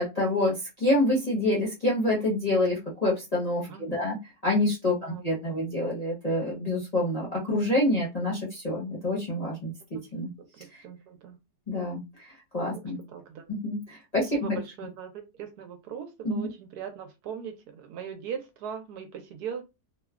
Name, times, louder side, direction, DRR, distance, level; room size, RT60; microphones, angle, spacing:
voice 1, 0.0-4.2 4.4-10.3 11.7-12.0 12.5-13.0 13.5-14.6 16.2-16.5, left 1 dB, 35° left, -5 dB, 0.6 m, -27 dB
voice 2, 3.7-4.1 4.9-5.2 7.5-7.7 10.4-11.4 12.8-13.5 14.3-15.1 15.4-19.7, right 7 dB, 75° right, 7 dB, 1.1 m, -40 dB
3.0 x 2.1 x 2.3 m, 0.24 s
omnidirectional pair, 1.8 m